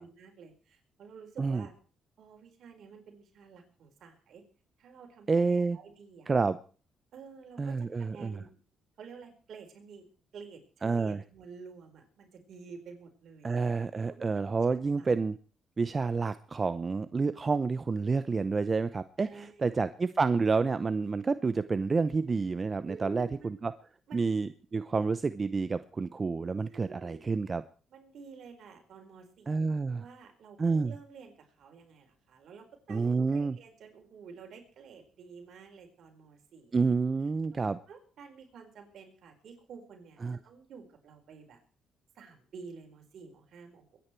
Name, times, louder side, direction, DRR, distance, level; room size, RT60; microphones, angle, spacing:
voice 1, 0.0-1.7 2.2-4.4 4.8-6.3 7.1-8.6 9.0-10.0 10.3-13.7 14.1-14.3 14.9-15.1 19.2-19.9 22.9-23.6 24.1-24.3 26.7-27.3 27.9-36.8 37.6-41.6 42.1-44.0, right 5 dB, 65° right, 3 dB, 4.6 m, -50 dB
voice 2, 5.3-5.8 6.3-6.6 7.6-8.4 10.8-11.2 13.4-15.4 15.8-23.7 24.1-27.6 29.5-30.0 30.6-30.9 32.9-33.6 36.7-37.8 40.2-40.4, right 4 dB, 30° right, 13 dB, 0.7 m, -29 dB
23.0 x 10.0 x 4.6 m, 0.39 s
cardioid pair, 90°, 0 cm